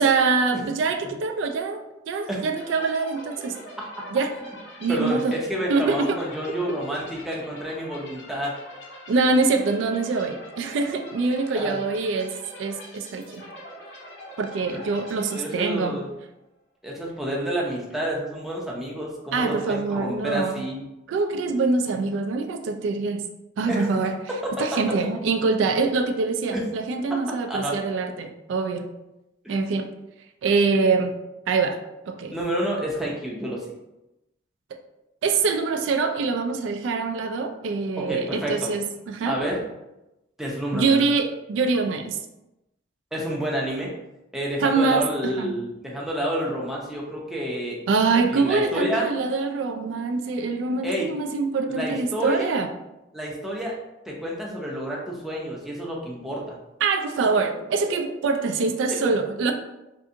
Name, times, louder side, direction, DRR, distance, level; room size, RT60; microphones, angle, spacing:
voice 1, 0.0-3.5 4.1-4.3 4.8-5.4 5.7-6.2 9.1-13.4 14.4-16.0 19.3-20.6 21.1-23.2 23.6-24.1 24.6-28.9 29.5-29.9 30.4-31.1 31.5-31.8 32.1-32.3 35.2-39.4 40.7-42.2 44.6-45.5 47.9-52.7 56.8-59.5, right 4 dB, 80° right, 6 dB, 0.3 m, -24 dB
sound 1, 2.5-16.1, equal, 70° left, 0.7 m, -43 dB
voice 2, 4.9-8.5 11.5-11.8 14.7-14.9 15.3-16.1 16.8-20.9 23.7-23.9 26.5-26.6 27.1-27.2 27.5-27.8 29.4-29.6 32.3-33.7 38.0-38.7 39.3-39.7 40.4-41.0 43.1-43.9 44.3-47.8 48.3-49.1 50.8-51.1 51.7-52.6 53.1-53.8 54.1-56.6, equal, ahead, -4 dB, 0.5 m, -29 dB
2.6 x 2.5 x 2.5 m, 0.95 s
head